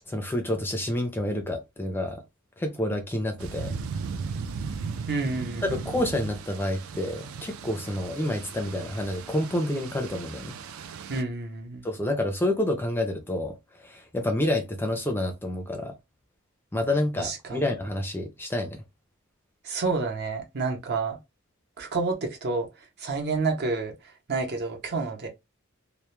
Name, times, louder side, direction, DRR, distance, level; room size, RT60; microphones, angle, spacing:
voice 1, 0.1-2.2 2.6-3.8 5.6-10.5 11.8-15.9 16.7-18.8, left 1 dB, 10° left, 0.4 m, -28 dB
sound 1, 3.4-11.2, right 5 dB, 70° right, 0.3 m, -37 dB
voice 2, 5.1-5.9 11.1-11.8 17.2-17.6 19.6-21.2 21.8-22.7 23.0-23.9 24.3-25.3, right 3 dB, 50° right, 0.7 m, -29 dB
2.2 x 2.0 x 2.9 m
head